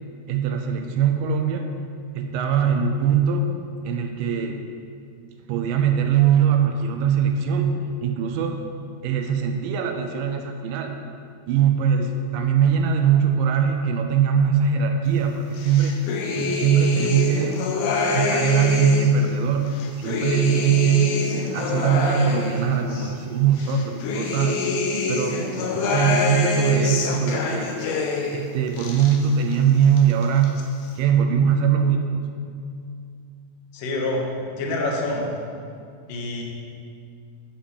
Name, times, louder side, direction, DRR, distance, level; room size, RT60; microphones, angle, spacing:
voice 1, 0.3-1.7 2.1-3.5 3.8-4.7 5.5-8.6 9.0-11.0 11.5-16.0 16.4-17.6 18.1-21.2 21.5-24.6 25.1-27.8 28.3-30.6 31.0-32.2, right 7 dB, 80° right, 4 dB, 2.1 m, -21 dB
sound 1, 15.6-19.2 19.7-23.1 23.6-28.4 28.7-29.6 29.8-30.6, left 3 dB, 85° left, 2.8 m, -26 dB
voice 2, 33.7-34.2 34.6-35.3 36.1-36.4, left 2 dB, 70° left, -1 dB, 2.7 m, -26 dB
10.5 x 5.2 x 7.3 m, 2.3 s
omnidirectional pair, 4.3 m